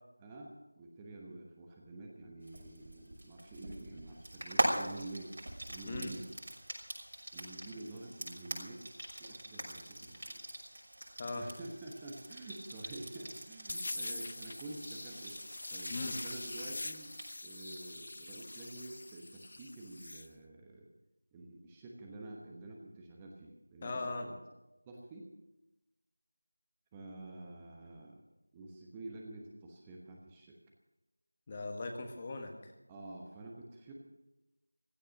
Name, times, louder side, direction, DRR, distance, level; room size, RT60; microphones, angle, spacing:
voice 1, 0.2-6.3 7.3-8.9 9.2-10.2 11.3-15.4 15.7-17.1 17.4-20.9 21.3-24.3 24.8-25.3 26.9-28.2 28.5-30.6 32.9-33.9, right 2 dB, 10° right, -1 dB, 1.1 m, -48 dB
Frying (food), 2.4-17.3, right 1 dB, 65° right, 6.2 m, -42 dB
sound 1, 13.7-20.3, left 2 dB, 50° left, 0.7 m, -43 dB
voice 2, 23.8-24.3 31.5-32.7, left 3 dB, 20° left, 4 dB, 1.4 m, -39 dB
16.0 x 13.0 x 6.4 m, 1.0 s
figure-of-eight pair, 170°, 0 cm